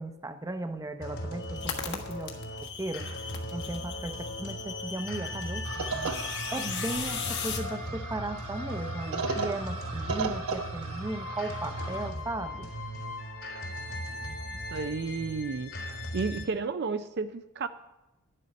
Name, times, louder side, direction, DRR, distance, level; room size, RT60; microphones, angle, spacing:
voice 1, 0.0-2.3 2.8-3.1 3.5-6.1 6.5-12.7, right 2 dB, 15° right, 8 dB, 0.7 m, -36 dB
sound 1, 1.0-16.4, left 1 dB, 75° left, 3.7 m, -38 dB
sound 2, 1.4-7.6, left 6 dB, 55° left, 1.5 m, -38 dB
sound 3, 5.6-12.1, right 4 dB, 85° right, 1.0 m, -36 dB
voice 2, 14.5-15.7 16.1-17.7, right 4 dB, 50° right, 10 dB, 0.4 m, -32 dB
11.0 x 11.0 x 5.2 m, 0.96 s
head